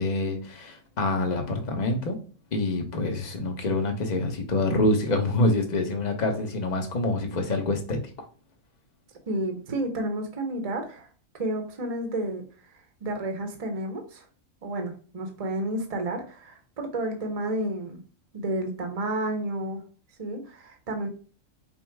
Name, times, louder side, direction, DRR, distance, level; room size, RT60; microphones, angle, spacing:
voice 1, 0.0-2.2 2.5-8.0, left 2 dB, 40° left, 1.0 m, -26 dB
voice 2, 9.3-11.1 11.4-12.4 13.0-14.2 14.6-18.0 18.3-19.8 20.2-21.1, right 1 dB, 35° right, 0.9 m, -31 dB
5.5 x 2.1 x 4.5 m
omnidirectional pair, 1.3 m